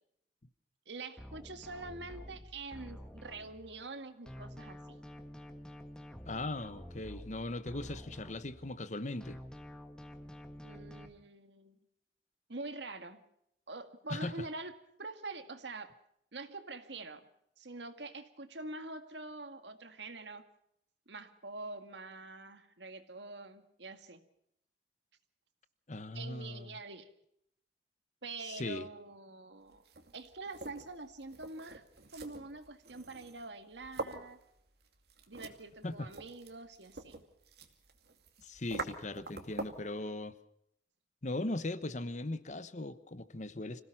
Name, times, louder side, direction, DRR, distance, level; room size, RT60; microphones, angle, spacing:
voice 1, 0.9-5.0 10.6-11.8 12.5-13.2 13.7-14.7 15.0-15.9 16.3-17.3 17.6-20.5 21.1-24.2 26.1-27.1 28.2-29.8 30.1-31.8 32.1-34.4 35.3-37.2, right 3 dB, 80° right, 2.0 m, -45 dB
sound 1, 1.2-4.0 4.3-8.9 9.2-11.1, equal, 5° left, 1.6 m, -49 dB
voice 2, 6.3-9.4 14.1-14.5 25.9-26.7 28.4-28.9 35.8-36.1 38.4-40.4 41.2-43.8, left 2 dB, 40° left, 1.1 m, -39 dB
sound 2, 29.7-39.9, right 3 dB, 60° right, 2.5 m, -46 dB
26.0 x 17.0 x 5.8 m
head